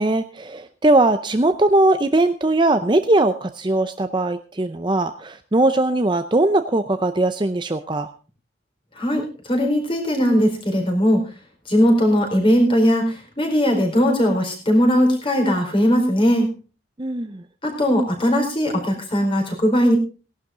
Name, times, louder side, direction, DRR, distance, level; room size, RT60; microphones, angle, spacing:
voice 1, 0.0-8.1 17.0-17.4, right 2 dB, 25° right, 9 dB, 0.6 m, -20 dB
voice 2, 9.0-11.2 11.7-16.5 17.6-19.9, equal, 25° left, 1 dB, 4.5 m, -19 dB
17.5 x 11.5 x 3.7 m, 0.35 s
head